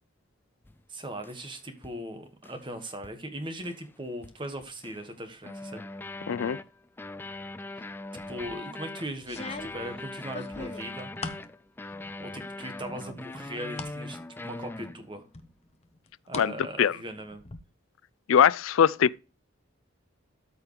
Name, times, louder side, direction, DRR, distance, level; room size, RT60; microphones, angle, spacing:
sound 1, 0.6-0.8 1.2-1.5 1.8-2.0 2.4-2.7 3.0-3.2 3.6-3.9 4.2-5.1 5.4-15.3, left 2 dB, 10° left, 0.3 m, -41 dB
voice 1, 0.9-5.8 8.3-11.1 12.2-14.2 14.4-15.3 16.3-17.4, right 1 dB, 25° right, 1.4 m, -39 dB
voice 2, 6.3-6.6 16.3-16.5 16.8-17.0 18.3-19.2, left 8 dB, 85° left, 0.4 m, -21 dB
sound 2, 8.2-8.6 9.2-11.5 11.9-12.5 12.8-14.0 14.4-14.5 15.3-16.5 16.8-17.6, left 3 dB, 30° left, 0.9 m, -41 dB
13.0 x 4.9 x 3.1 m
head